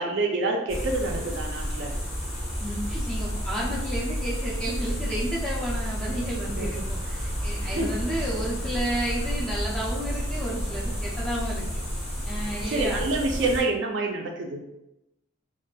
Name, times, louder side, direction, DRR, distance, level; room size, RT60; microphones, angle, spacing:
voice 1, 0.0-1.9 6.5-6.8 7.7-8.0 12.7-14.6, right 2 dB, 60° right, 2 dB, 0.3 m, -27 dB
sound 1, 0.7-13.6, equal, 30° left, 0.8 m, -31 dB
voice 2, 2.6-11.8 12.2-13.0, right 1 dB, 5° left, -6 dB, 0.5 m, -32 dB
2.7 x 2.4 x 2.2 m, 0.89 s
head